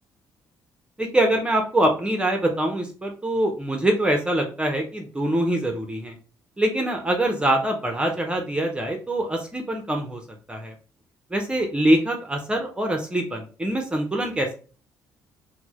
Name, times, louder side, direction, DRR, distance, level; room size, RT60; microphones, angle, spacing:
voice 1, 1.0-6.1 6.6-10.2 10.5-10.7 11.3-14.5, right 1 dB, 15° right, 3 dB, 0.7 m, -24 dB
4.3 x 2.1 x 2.9 m, 0.37 s
cardioid pair, 90°, 7 cm